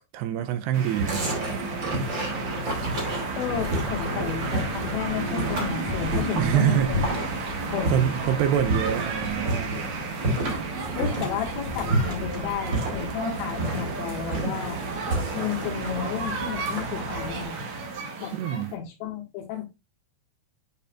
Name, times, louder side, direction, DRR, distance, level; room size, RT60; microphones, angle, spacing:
voice 1, 0.1-1.3 6.4-6.9 7.9-9.7 18.3-18.7, right 10 dB, 85° right, 2.5 m, -25 dB
sound 1, 0.7-18.7, right 4 dB, 60° right, 1.9 m, -33 dB
sound 2, 1.0-17.4, right 2 dB, 35° right, 2.4 m, -31 dB
voice 2, 3.3-7.2 7.6-8.1 11.0-14.8 15.3-17.6 18.2-19.7, left 8 dB, 85° left, 3.9 m, -32 dB
sound 3, 3.4-13.1, left 5 dB, 50° left, 3.2 m, -39 dB
8.9 x 5.2 x 2.4 m
omnidirectional pair, 5.2 m